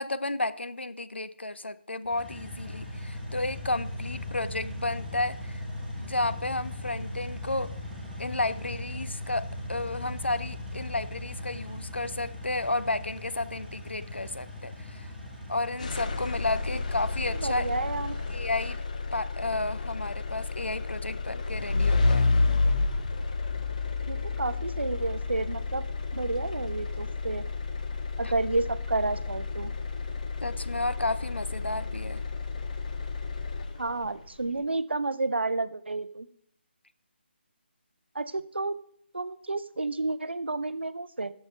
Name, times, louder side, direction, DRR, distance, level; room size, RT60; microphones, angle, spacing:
voice 1, 0.0-5.6 6.0-7.7 8.2-15.1 15.5-17.7 18.3-18.8 19.1-22.3 28.2-28.3 30.4-32.2, left 2 dB, 80° left, 14 dB, 0.5 m, -32 dB
sound 1, 2.0-18.7, left 1 dB, ahead, 2.1 m, -39 dB
sound 2, 15.8-34.1, left 3 dB, 40° left, 0.7 m, -30 dB
voice 2, 17.4-18.2 24.1-25.8 26.1-27.4 28.2-29.7 33.8-36.3 38.1-38.8 39.1-41.3, right 3 dB, 75° right, 14 dB, 0.5 m, -30 dB
10.5 x 7.3 x 3.3 m, 0.64 s
figure-of-eight pair, 150°, 6 cm